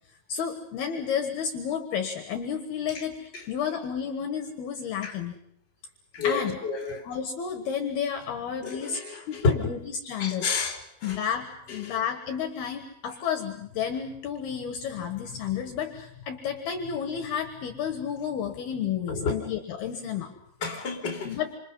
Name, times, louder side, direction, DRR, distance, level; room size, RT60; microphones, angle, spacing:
voice 1, 0.3-5.4 6.2-6.6 7.0-9.0 9.3-10.5 11.0-20.3 21.2-21.5, left 7 dB, 65° left, 3.1 m, -31 dB
voice 2, 6.1-7.1 8.6-9.7 10.2-11.2 11.8-11.9 19.1-19.4 20.6-21.3, left 4 dB, 25° left, 3.6 m, -30 dB
28.0 x 27.0 x 5.5 m
omnidirectional pair, 5.4 m